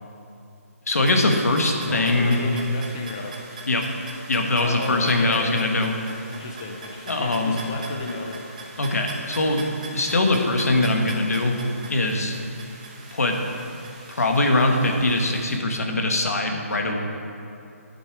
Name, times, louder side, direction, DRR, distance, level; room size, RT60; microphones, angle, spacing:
voice 1, 0.9-2.4 3.7-3.9 4.3-5.9 7.1-7.6 8.8-9.6 9.9-11.5 11.9-12.4 13.1-13.4 14.1-17.0, left 2 dB, 70° left, 3 dB, 1.6 m, -22 dB
sound 1, 1.0-15.6, right 3 dB, 30° right, 1.2 m, -41 dB
voice 2, 1.9-3.3 4.6-5.9 6.3-8.4, left 3 dB, 15° left, 1 dB, 0.4 m, -34 dB
11.0 x 8.7 x 4.9 m, 2.6 s
hypercardioid pair, 175°, 8 cm